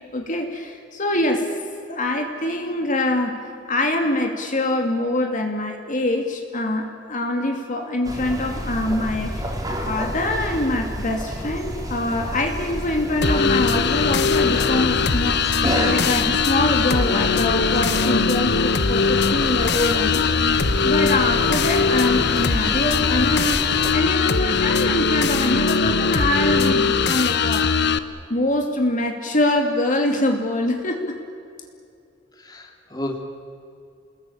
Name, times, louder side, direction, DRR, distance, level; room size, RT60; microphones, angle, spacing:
voice 1, 0.1-1.5 1.9-3.4 3.7-9.5 9.9-15.4 15.7-27.7 28.3-31.2, left 1 dB, 45° left, 3 dB, 2.7 m, -24 dB
sound 1, 8.0-23.9, equal, 20° right, 4.1 m, -30 dB
sound 2, 13.2-28.0, left 5 dB, 60° left, 1.1 m, -20 dB
voice 2, 32.4-33.2, left 1 dB, 20° left, 2 dB, 2.8 m, -32 dB
29.5 x 20.5 x 8.7 m, 2.5 s
head